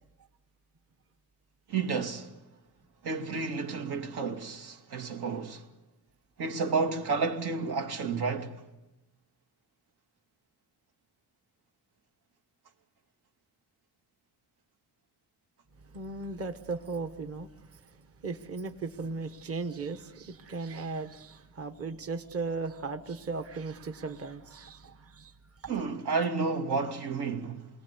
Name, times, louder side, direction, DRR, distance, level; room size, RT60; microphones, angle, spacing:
voice 1, 1.7-2.3 3.0-5.7 6.4-8.6 25.7-27.7, right 4 dB, 85° right, 2.4 m, -31 dB
voice 2, 15.8-25.7, right 3 dB, 40° right, 1.2 m, -37 dB
28.0 x 22.5 x 8.4 m
wide cardioid pair, 165°, 38 cm